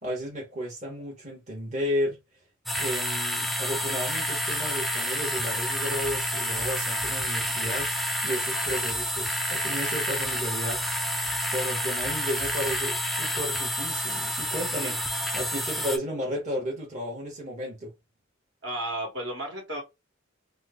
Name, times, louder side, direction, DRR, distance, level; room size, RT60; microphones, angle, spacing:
voice 1, 0.0-2.2 2.8-10.8 11.5-15.0 15.3-17.9, equal, 35° right, 1.1 m, -33 dB
sound 1, 2.7-16.0, equal, ahead, 0.4 m, -29 dB
voice 2, 18.6-19.8, right 1 dB, 60° right, 1.5 m, -33 dB
3.0 x 2.1 x 3.5 m
head